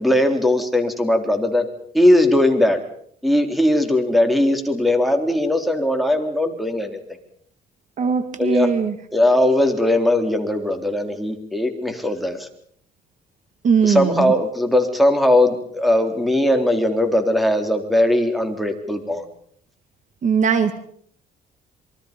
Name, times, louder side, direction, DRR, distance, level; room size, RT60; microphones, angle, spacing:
voice 1, 0.0-1.7 1.9-2.8 3.2-7.0 8.4-8.7 9.1-12.5 13.8-19.2, left 1 dB, ahead, 6 dB, 3.9 m, -19 dB
voice 2, 8.0-8.9 13.6-14.3 20.2-20.7, right 6 dB, 45° right, 10 dB, 2.1 m, -19 dB
27.5 x 23.5 x 5.4 m, 0.63 s
cardioid pair, 110°, 17 cm